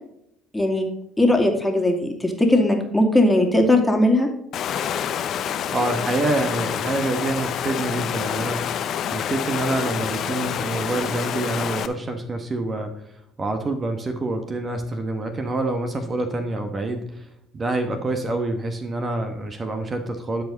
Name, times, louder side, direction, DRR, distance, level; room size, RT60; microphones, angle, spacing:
voice 1, 0.5-0.9 1.2-4.3, left 1 dB, 10° left, 3 dB, 2.4 m, -19 dB
Water, 4.5-11.9, left 9 dB, 55° left, 0.7 m, -27 dB
voice 2, 5.7-8.8 9.1-12.9 13.4-17.3 17.5-20.4, right 2 dB, 35° right, 6 dB, 1.3 m, -26 dB
12.0 x 5.0 x 5.2 m, 0.78 s
hypercardioid pair, 60°, 0 cm